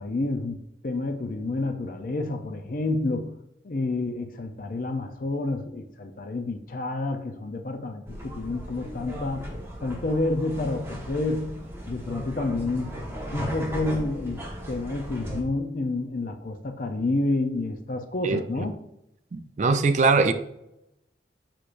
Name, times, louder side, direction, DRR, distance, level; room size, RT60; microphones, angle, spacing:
voice 1, 0.0-3.4 3.6-9.5 9.8-12.9 13.3-18.8, left 2 dB, 50° left, 0.5 m, -29 dB
sound 1, 8.1-15.4, equal, 15° right, 1.2 m, -36 dB
voice 2, 19.3-20.3, right 4 dB, 45° right, 0.4 m, -21 dB
6.5 x 5.8 x 2.5 m
head